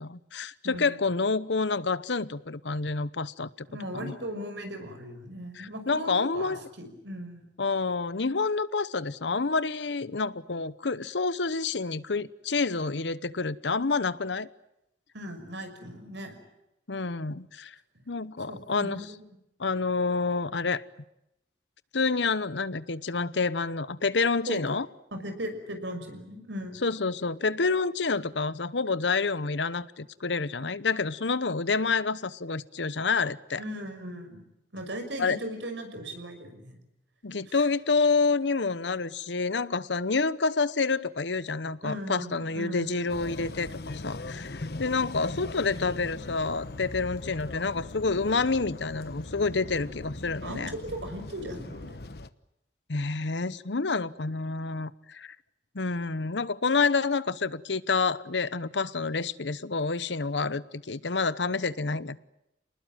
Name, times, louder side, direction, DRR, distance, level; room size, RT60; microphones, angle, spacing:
voice 1, 0.0-3.7 3.9-4.1 5.6-6.6 7.6-14.5 16.9-17.8 18.1-19.0 19.6-20.8 21.9-24.9 26.8-33.6 35.2-35.4 37.2-50.7 52.9-55.3 55.7-62.2, left 4 dB, 85° left, 17 dB, 1.0 m, -28 dB
voice 2, 0.6-1.0 3.7-7.5 15.1-16.4 18.5-19.2 24.5-24.6 25.1-26.8 33.6-34.5 34.7-36.8 37.5-37.7 41.8-43.1 50.4-52.0, equal, 85° right, 6 dB, 5.9 m, -38 dB
sound 1, 43.1-52.3, left 2 dB, 60° left, 1.0 m, -40 dB
28.5 x 20.0 x 9.1 m, 0.87 s
head